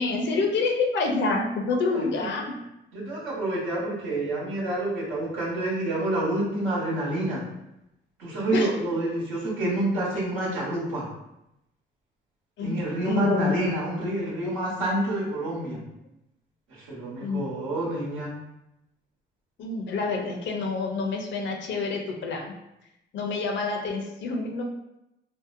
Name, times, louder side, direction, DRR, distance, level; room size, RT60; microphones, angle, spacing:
voice 1, 0.0-2.6 8.5-8.7 12.6-13.6 17.2-17.5 19.6-22.5 23.1-24.6, left 3 dB, 65° left, 2 dB, 0.5 m, -27 dB
voice 2, 1.8-2.3 2.9-7.4 8.2-11.1 12.6-15.8 16.8-18.3, right 1 dB, 85° right, -8 dB, 1.1 m, -28 dB
2.7 x 2.1 x 2.5 m, 0.87 s
cardioid pair, 90°, 20 cm